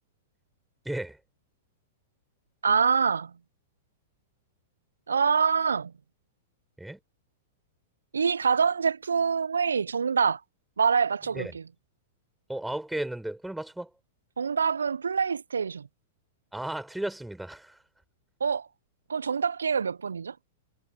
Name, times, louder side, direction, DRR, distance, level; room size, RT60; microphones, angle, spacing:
voice 1, 0.8-1.2 6.8-7.0 11.3-11.5 12.5-13.9 16.5-17.8, right 1 dB, 5° right, 5.0 m, -34 dB
voice 2, 2.6-3.3 5.1-5.9 8.1-10.4 10.8-11.6 14.4-15.9 18.4-18.7 19.1-20.3, right 6 dB, 75° right, 0.6 m, -25 dB
figure-of-eight pair, 100°, 0 cm